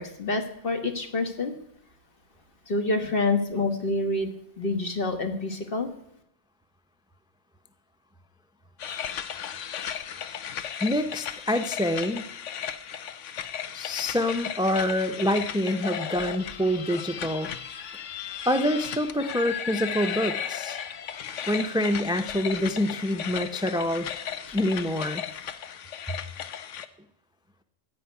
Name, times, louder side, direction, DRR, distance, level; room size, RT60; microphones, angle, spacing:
voice 1, 0.0-1.5 2.7-4.3 4.6-5.9, left 2 dB, 45° left, 6 dB, 1.6 m, -27 dB
sound 1, 8.8-26.9, left 9 dB, 70° left, 1.1 m, -35 dB
voice 2, 10.8-12.2 13.7-17.5 18.5-20.8 21.5-24.1 24.5-25.2, left 1 dB, 5° right, 9 dB, 0.5 m, -26 dB
15.5 x 5.3 x 9.6 m, 0.74 s
omnidirectional pair, 1.3 m